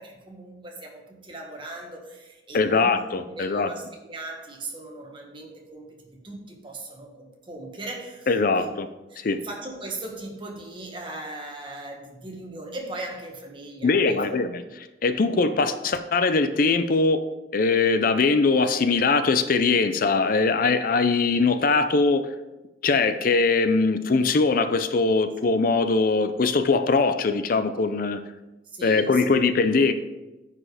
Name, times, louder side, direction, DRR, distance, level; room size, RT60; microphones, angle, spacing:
voice 1, 0.0-8.8 9.1-14.2 28.6-29.5, right 2 dB, 30° right, 0 dB, 1.6 m, -39 dB
voice 2, 2.5-3.7 8.3-8.9 9.2-9.4 13.8-14.6 15.0-17.2 17.5-22.3 22.8-28.2 28.8-29.9, left 4 dB, 50° left, 10 dB, 0.5 m, -21 dB
9.9 x 5.0 x 5.0 m, 1.0 s
head